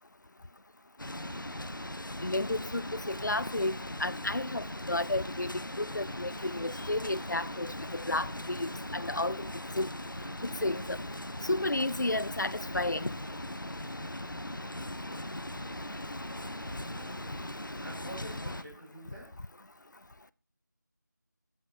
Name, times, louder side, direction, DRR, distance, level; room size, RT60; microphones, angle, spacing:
sound 1, 1.0-18.6, left 1 dB, 90° left, 1.0 m, -39 dB
voice 1, 2.2-3.7 4.0-9.5 9.8-9.9 10.6-11.0 11.4-13.1, left 2 dB, 70° left, 0.5 m, -32 dB
sound 2, 5.7-17.1, right 2 dB, 75° right, 2.9 m, -56 dB
voice 2, 16.3-16.6 16.9-17.3 17.8-19.3, right 1 dB, 5° right, 1.3 m, -47 dB
18.0 x 8.1 x 2.7 m
figure-of-eight pair, 175°, 10 cm